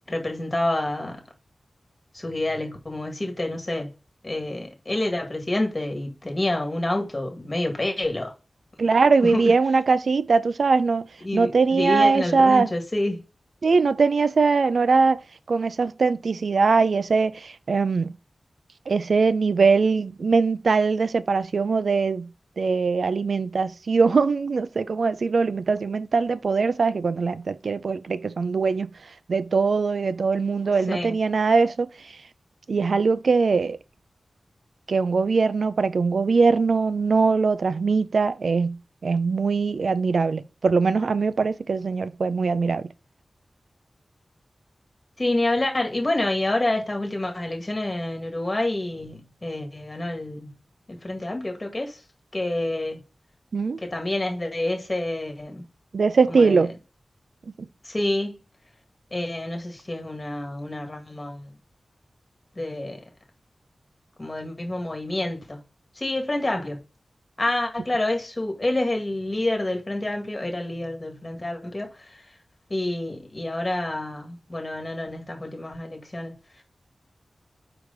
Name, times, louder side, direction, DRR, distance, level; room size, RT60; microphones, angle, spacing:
voice 1, 0.1-1.2 2.1-3.9 4.2-8.3 9.2-9.5 11.2-13.2 30.9-31.2 45.2-50.5 50.9-52.0 52.3-53.0 53.8-55.7 56.3-56.7 57.8-58.4 59.1-61.5 62.6-63.0 64.2-65.6 66.0-66.8 67.4-72.2 72.7-76.4, left 1 dB, 25° left, 1.9 m, -28 dB
voice 2, 8.8-11.1 11.3-12.7 13.6-15.2 15.5-18.1 18.9-22.3 22.6-28.9 29.3-31.9 32.7-33.8 34.9-38.8 39.0-42.9 53.5-53.8 55.9-56.7, right 4 dB, 75° right, 0.5 m, -21 dB
4.9 x 4.8 x 5.2 m
wide cardioid pair, 95°, 0 cm